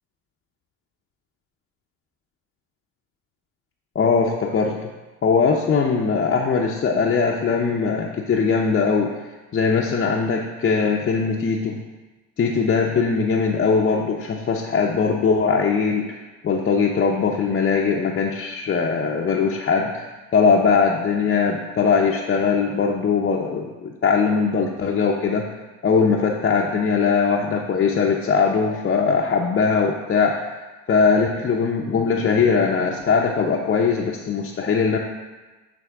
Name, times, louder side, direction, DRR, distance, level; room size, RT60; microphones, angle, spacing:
voice 1, 3.9-4.9 5.2-9.1 9.5-11.8 12.4-16.1 16.4-20.1 20.3-25.5 25.8-30.5 30.9-35.0, left 5 dB, 30° left, -2 dB, 0.7 m, -20 dB
8.7 x 3.5 x 3.5 m, 1.2 s
hypercardioid pair, 70°, 37 cm